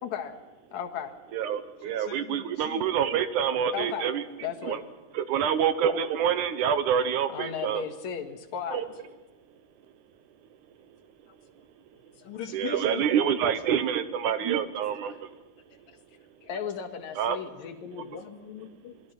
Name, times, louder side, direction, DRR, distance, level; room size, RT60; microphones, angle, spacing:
voice 1, 0.0-0.3 0.7-1.1 3.7-4.1 4.4-4.8 7.3-8.8 12.2-12.3 16.4-17.5, left 8 dB, 60° left, 4 dB, 2.7 m, -35 dB
voice 2, 1.3-4.2 4.6-4.8 5.1-7.8 8.7-8.9 12.5-15.2 17.2-17.4, right 8 dB, 70° right, 11 dB, 2.2 m, -27 dB
voice 3, 1.8-2.8 12.2-13.4 14.3-14.6 17.5-18.9, left 8 dB, 75° left, -1 dB, 3.1 m, -41 dB
28.0 x 20.5 x 5.9 m, 1.2 s
omnidirectional pair, 4.0 m